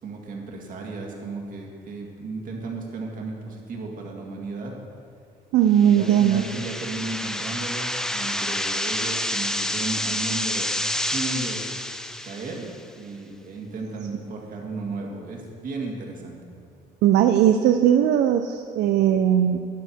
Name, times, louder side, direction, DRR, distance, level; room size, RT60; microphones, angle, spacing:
voice 1, 0.0-4.7 5.8-10.7 11.0-11.6 12.2-12.7 13.0-16.4, right 3 dB, 55° right, 0 dB, 2.1 m, -34 dB
voice 2, 5.5-6.4 17.0-19.6, right 10 dB, 80° right, 7 dB, 0.5 m, -18 dB
sound 1, 5.8-12.8, left 1 dB, 5° left, 0.6 m, -29 dB
11.5 x 8.7 x 4.6 m, 2.3 s
cardioid pair, 110°, 17 cm